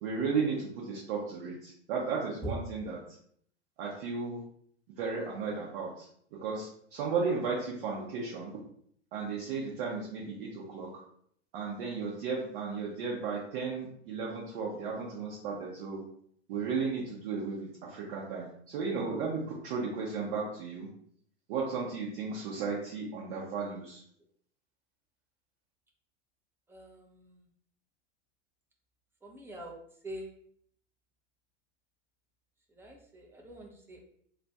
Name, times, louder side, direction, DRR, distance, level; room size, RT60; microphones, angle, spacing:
voice 1, 0.0-3.0 3.8-4.4 5.0-6.1 6.4-8.5 9.1-10.9 11.5-16.0 16.5-20.9 21.5-24.0, right 5 dB, 50° right, -3 dB, 0.8 m, -34 dB
voice 2, 29.2-29.7 30.0-30.3 32.8-34.0, equal, 5° right, -1 dB, 0.6 m, -42 dB
2.4 x 2.3 x 4.0 m, 0.64 s
figure-of-eight pair, 95°, 35 cm